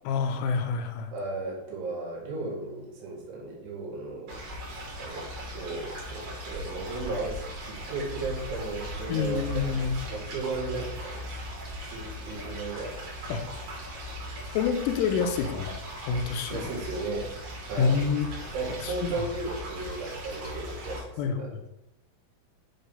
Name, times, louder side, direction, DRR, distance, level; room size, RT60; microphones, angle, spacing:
voice 1, 0.1-1.1 9.1-10.0 13.3-13.4 14.5-15.7 16.0-16.6 17.8-18.3 18.8-19.1 21.2-21.4, left 6 dB, 85° left, 5 dB, 3.2 m, -27 dB
voice 2, 1.1-4.5 4.9-5.3 5.5-11.3 11.8-13.0 16.5-17.3 17.7-18.0 18.5-21.6, right 3 dB, 75° right, -3 dB, 4.4 m, -35 dB
sound 1, 4.3-21.0, equal, 40° right, 3.2 m, -38 dB
10.0 x 3.8 x 5.4 m, 0.88 s
omnidirectional pair, 5.7 m